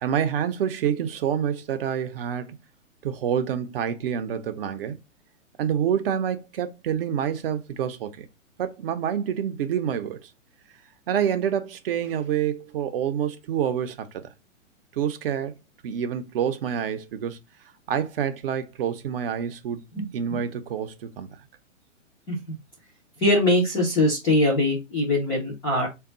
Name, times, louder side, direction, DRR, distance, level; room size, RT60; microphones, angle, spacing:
voice 1, 0.0-2.6 3.0-5.0 5.6-8.3 8.6-10.3 11.1-14.3 15.0-15.5 15.8-17.4 17.9-19.8 20.1-21.3, right 8 dB, 45° right, 0.6 m, -27 dB
voice 2, 23.2-25.9, left 1 dB, 10° left, 0.4 m, -22 dB
3.5 x 2.3 x 3.8 m
figure-of-eight pair, 120°, 39 cm